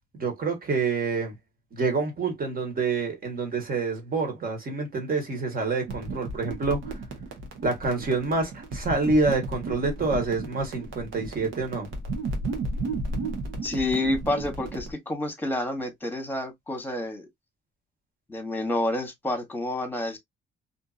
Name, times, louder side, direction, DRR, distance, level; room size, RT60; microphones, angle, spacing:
voice 1, 0.1-1.4 1.7-6.9 7.6-11.9, right 3 dB, 45° right, 1.3 m, -27 dB
sound 1, 5.9-14.9, right 2 dB, 85° right, 1.0 m, -34 dB
voice 2, 13.6-17.3 18.3-20.2, left 1 dB, 10° left, 1.1 m, -29 dB
2.6 x 2.5 x 2.4 m
cardioid pair, 90°, 20 cm